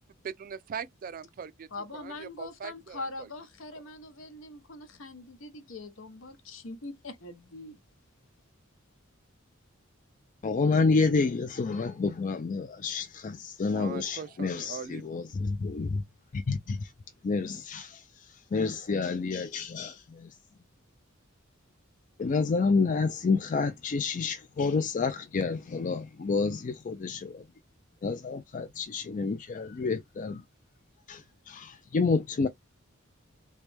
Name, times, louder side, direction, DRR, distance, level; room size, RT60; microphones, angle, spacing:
voice 1, 0.2-1.7 1.9-3.3 13.7-15.2, right 6 dB, 45° right, 0.3 m, -41 dB
voice 2, 1.7-7.8, left 2 dB, 65° left, 0.9 m, -42 dB
voice 3, 10.4-16.0 16.3-16.9 17.2-20.4 22.2-27.4 28.0-30.4 31.1-32.5, left 4 dB, 40° left, 0.4 m, -29 dB
3.3 x 3.0 x 3.3 m
head